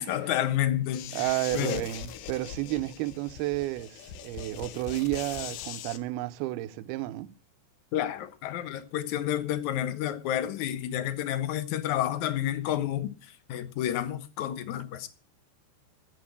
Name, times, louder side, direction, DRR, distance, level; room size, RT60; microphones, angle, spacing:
voice 1, 0.0-1.3 1.5-1.9 7.9-15.1, left 11 dB, 70° left, 1.9 m, -30 dB
sound 1, 0.9-6.0, left 9 dB, 85° left, 3.3 m, -41 dB
voice 2, 1.1-7.3, right 17 dB, 75° right, 2.5 m, -31 dB
13.0 x 8.2 x 8.5 m
omnidirectional pair, 5.0 m